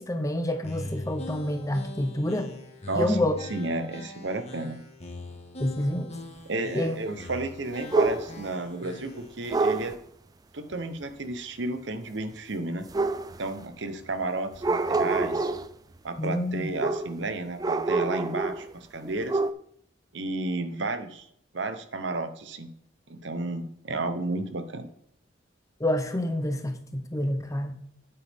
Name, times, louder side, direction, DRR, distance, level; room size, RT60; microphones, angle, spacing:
voice 1, 0.0-2.5 2.9-3.4 5.6-6.1 6.7-7.0 16.2-16.7 25.8-27.8, left 1 dB, 15° left, 6 dB, 0.7 m, -28 dB
sound 1, 0.6-9.4, left 2 dB, 35° left, 1.7 m, -41 dB
voice 2, 2.9-3.2 3.5-4.8 6.5-9.9 10.5-12.9 13.4-15.5 16.0-19.4 20.1-21.3 21.5-22.7 23.1-24.9, right 2 dB, 65° right, 9 dB, 0.9 m, -32 dB
sound 2, 7.9-8.5 9.5-9.9 12.9-13.6 14.5-15.7 16.8-17.2 17.6-18.7 19.0-19.5, right 3 dB, 20° right, 0.3 m, -27 dB
8.9 x 8.3 x 3.6 m, 0.67 s
head